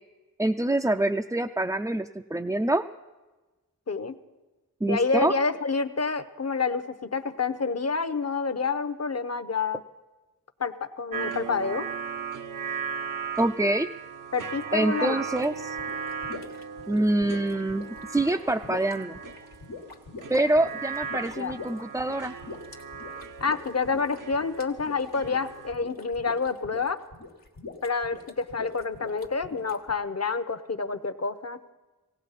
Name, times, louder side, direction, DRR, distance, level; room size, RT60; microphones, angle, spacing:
voice 1, 0.4-2.8 4.8-5.3 13.4-13.9 14.7-15.7 16.9-19.2 20.3-22.3, right 1 dB, 10° right, 4 dB, 0.4 m, -25 dB
voice 2, 3.9-4.2 4.9-9.8 10.6-11.9 14.3-15.2 21.4-21.5 23.4-27.0 27.8-31.6, left 4 dB, 45° left, 11 dB, 0.9 m, -28 dB
sound 1, 11.1-25.7, right 6 dB, 65° right, 0.7 m, -37 dB
sound 2, 15.3-30.0, left 3 dB, 85° left, 1.5 m, -43 dB
18.0 x 17.0 x 4.1 m, 1.2 s
cardioid pair, 45°, 36 cm